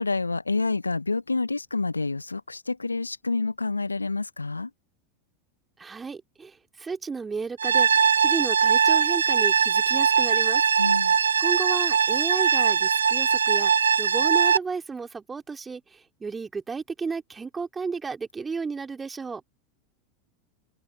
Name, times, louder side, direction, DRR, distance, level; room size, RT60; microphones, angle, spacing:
voice 1, 0.0-4.7 10.8-11.2, left 3 dB, 85° left, 1.9 m, -28 dB
voice 2, 5.8-10.6 11.4-13.7 14.0-19.4, right 5 dB, 15° right, 3.1 m, -33 dB
sound 1, 7.6-14.6, right 7 dB, 75° right, 0.6 m, -21 dB
open air
figure-of-eight pair, 85°, 0 cm